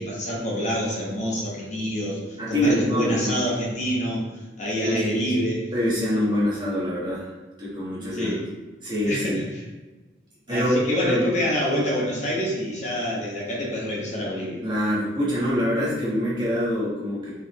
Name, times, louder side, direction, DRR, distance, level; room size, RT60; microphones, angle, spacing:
voice 1, 0.0-4.2 4.6-5.6 8.0-8.5 9.0-9.6 10.5-14.6, equal, 35° left, -4 dB, 1.1 m, -27 dB
voice 2, 2.4-3.3 4.8-5.3 5.7-7.3 7.6-8.3 8.8-9.4 10.5-11.3 14.6-17.3, equal, 25° right, -8 dB, 1.4 m, -25 dB
3.8 x 3.5 x 3.0 m, 1.2 s
head